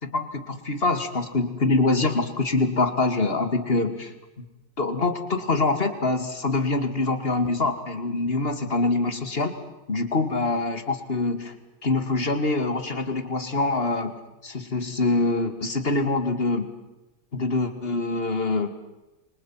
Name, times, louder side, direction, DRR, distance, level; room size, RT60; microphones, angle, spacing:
voice 1, 0.0-4.5 4.8-9.5 9.9-11.5 11.8-14.1 14.4-16.7 17.3-18.7, left 3 dB, 30° left, 8 dB, 2.5 m, -25 dB
28.5 x 25.0 x 5.9 m, 1.0 s
omnidirectional pair, 2.0 m